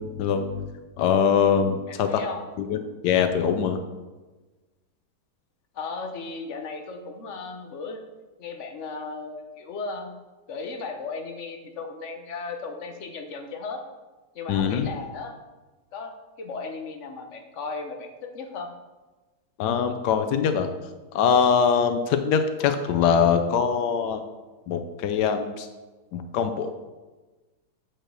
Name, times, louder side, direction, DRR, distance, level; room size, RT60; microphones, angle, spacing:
voice 1, 0.0-2.2 2.6-3.8 14.5-14.9 19.6-20.7 21.1-24.2 24.7-25.7 26.1-26.7, left 7 dB, 90° left, 8 dB, 1.2 m, -23 dB
voice 2, 1.9-2.5 5.7-8.0 8.4-10.1 10.5-13.8 14.3-15.3 15.9-18.7, left 4 dB, 55° left, 5 dB, 1.1 m, -36 dB
8.0 x 4.4 x 6.3 m, 1.2 s
omnidirectional pair, 1.7 m